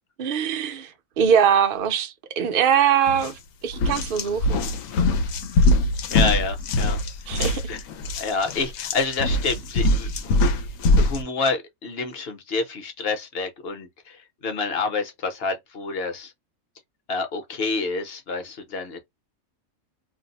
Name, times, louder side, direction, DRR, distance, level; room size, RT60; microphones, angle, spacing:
voice 1, 0.2-0.9 1.2-3.3 3.6-4.6 7.3-7.6, right 8 dB, 55° right, 0.7 m, -22 dB
sound 1, 3.1-3.3 3.7-11.2, left 2 dB, 75° left, 1.0 m, -22 dB
voice 2, 6.1-7.0 7.7-7.8 8.2-10.4 10.9-14.2 14.4-16.3 17.1-19.0, left 4 dB, 50° left, 0.9 m, -28 dB
2.6 x 2.0 x 3.9 m
omnidirectional pair, 1.4 m